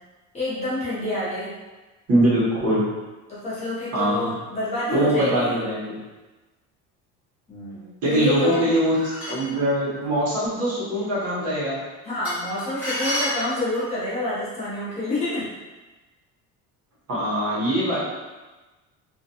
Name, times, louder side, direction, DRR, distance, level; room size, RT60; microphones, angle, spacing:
voice 1, 0.3-1.5 3.3-5.6 7.5-8.7 12.0-15.5, left 2 dB, 20° left, -10 dB, 0.7 m, -28 dB
voice 2, 2.1-2.8 3.9-4.4 4.9-6.0 8.0-9.0 9.3-11.8 17.1-18.1, right 1 dB, 50° right, -7 dB, 1.0 m, -22 dB
sound 1, 8.5-9.6 12.2-13.9, left 1 dB, 5° right, 1.2 m, -30 dB
2.4 x 2.2 x 2.7 m, 1.2 s
cardioid pair, 160°, 32 cm